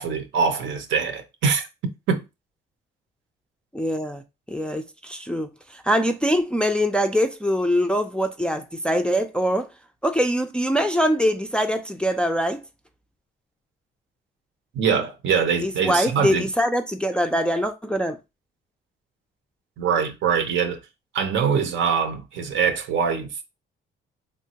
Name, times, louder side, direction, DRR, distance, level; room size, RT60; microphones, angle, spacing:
voice 1, 0.0-1.7 2.1-2.2 14.7-16.5 19.8-20.8 21.1-23.4, right 6 dB, 70° right, 0.6 m, -23 dB
voice 2, 3.7-4.2 4.5-9.7 10.0-12.6 15.6-18.2, equal, 5° left, 0.3 m, -23 dB
3.1 x 2.2 x 2.8 m
cardioid pair, 90°, 20 cm